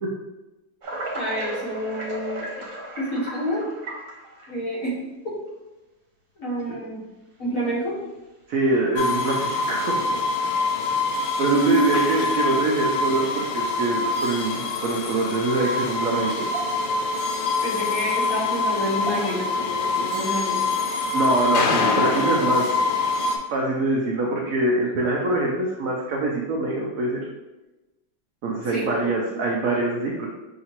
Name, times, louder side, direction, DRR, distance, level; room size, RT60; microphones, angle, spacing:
sound 1, 0.8-4.7 5.5-5.6 6.6-6.7 7.4-7.7 8.2-8.3 8.7-8.9 10.3-10.4 13.1-13.2 14.0-14.6 16.0-16.1 16.4-17.1 17.4-17.5 18.8-19.6 20.3-20.6, right 1 dB, 55° right, 1.2 m, -36 dB
voice 1, 1.1-2.4 3.0-3.6 4.5-4.9 5.2-5.3 6.4-7.0 7.4-8.0 11.5-11.8 17.6-20.6 28.7-28.9, equal, 50° left, -6 dB, 1.5 m, -28 dB
voice 2, 8.5-9.9 10.4-10.7 11.4-16.4 20.2-20.4 21.1-22.7 23.5-27.2 28.4-30.3, right 2 dB, 75° right, -1 dB, 0.7 m, -24 dB
sound 2, 9.0-23.4, left 3 dB, 80° left, 1.3 m, -25 dB
5.7 x 2.8 x 2.9 m, 1.1 s
omnidirectional pair, 2.1 m